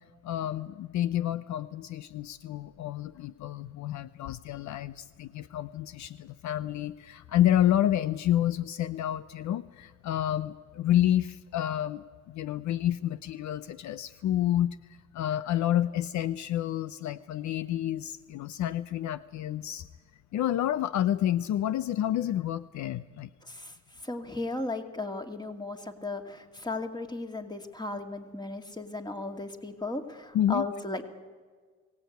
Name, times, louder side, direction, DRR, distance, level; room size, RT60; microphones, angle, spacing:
voice 1, 0.2-14.8 15.1-19.9 20.3-23.3 30.3-30.6, left 12 dB, 70° left, 15 dB, 0.6 m, -29 dB
voice 2, 23.4-31.0, left 2 dB, 15° left, 5 dB, 2.4 m, -36 dB
22.5 x 17.5 x 9.3 m, 1.5 s
cardioid pair, 90°, 30 cm